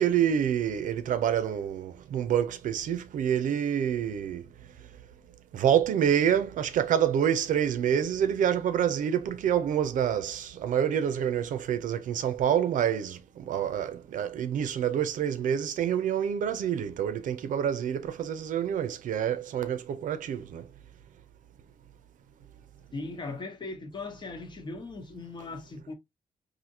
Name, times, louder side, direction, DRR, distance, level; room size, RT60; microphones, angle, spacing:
voice 1, 0.0-4.5 5.5-20.7, right 9 dB, 90° right, 0.6 m, -27 dB
voice 2, 22.9-25.9, left 3 dB, 35° left, 0.9 m, -39 dB
4.2 x 2.7 x 2.7 m
wide cardioid pair, 140°, 13 cm